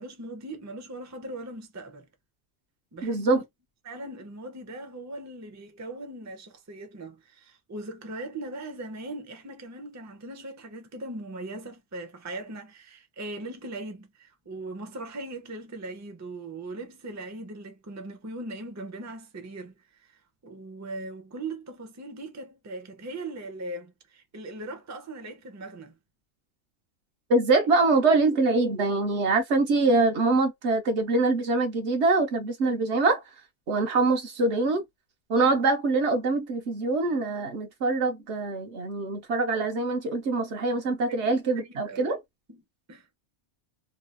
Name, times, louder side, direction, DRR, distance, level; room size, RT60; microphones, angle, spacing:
voice 1, 0.0-2.1 2.9-3.4 3.8-26.0 40.7-40.8 41.1-41.2 41.5-42.1 42.5-42.6 42.9-43.1, right 2 dB, 20° right, 0.6 m, -39 dB
voice 2, 3.0-3.4 27.3-33.2 33.7-34.8 35.3-42.2, right 3 dB, 65° right, 1.1 m, -24 dB
3.1 x 2.3 x 2.5 m
omnidirectional pair, 1.3 m